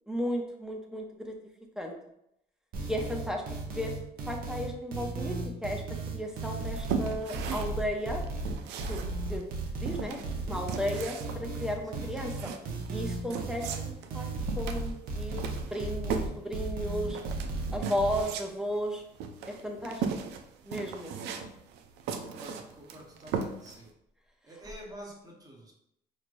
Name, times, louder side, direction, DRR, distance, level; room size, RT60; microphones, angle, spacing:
voice 1, 0.1-1.3 1.8-1.9 2.8-3.4 3.7-3.9 4.3-5.8 6.1-8.2 8.9-9.0 9.3-9.4 9.8-10.2 10.4-12.5 12.9-14.3 14.6-17.2 17.7-19.0 19.5-20.0 20.7-21.1, equal, 5° right, 1 dB, 0.6 m, -34 dB
sound 1, 2.7-18.2, right 3 dB, 60° right, 0.8 m, -35 dB
sound 2, 6.4-23.9, right 6 dB, 90° right, 0.4 m, -38 dB
voice 2, 12.0-12.3 22.1-23.9 24.4-25.7, equal, 20° right, 0 dB, 1.0 m, -48 dB
4.2 x 3.1 x 2.5 m, 0.78 s
cardioid pair, 110°, 17 cm